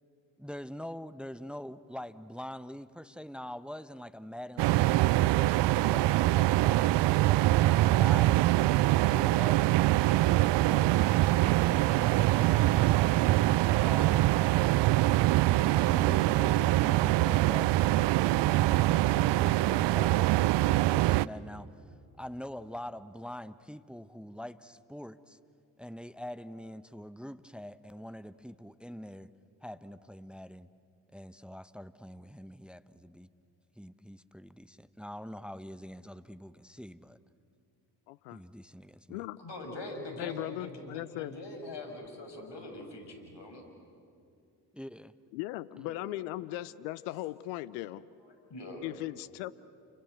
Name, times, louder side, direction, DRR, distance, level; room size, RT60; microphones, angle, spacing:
voice 1, 0.4-8.4 8.8-12.9 13.8-14.4 15.7-25.4 25.8-29.3 29.6-30.7 31.1-33.3 33.8-37.2 38.3-39.2 44.7-45.1 45.8-45.9, equal, ahead, 13 dB, 1.0 m, -44 dB
sound 1, 4.6-21.3, right 16 dB, 60° right, 0.6 m, -24 dB
voice 2, 38.1-38.4 39.1-39.4 40.2-41.3 45.3-48.0 48.8-49.5, left 16 dB, 80° left, 17 dB, 0.7 m, -38 dB
voice 3, 39.4-43.7 45.9-46.0 48.2-48.9, left 2 dB, 55° left, 4 dB, 6.6 m, -43 dB
29.5 x 25.0 x 8.0 m, 2.4 s
hypercardioid pair, 40°, 49 cm